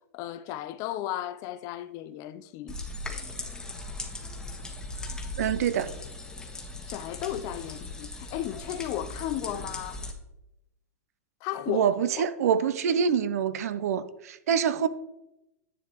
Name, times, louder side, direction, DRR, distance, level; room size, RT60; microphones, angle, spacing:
voice 1, 0.1-2.8 6.9-10.0 11.4-11.9 12.2-12.3, left 12 dB, 40° left, 0.5 m, -34 dB
sound 1, 2.7-10.1, left 2 dB, 10° left, 1.3 m, -38 dB
voice 2, 5.4-5.9 11.7-14.9, right 7 dB, 70° right, 0.6 m, -26 dB
10.5 x 7.5 x 3.0 m
hypercardioid pair, 125°, 9 cm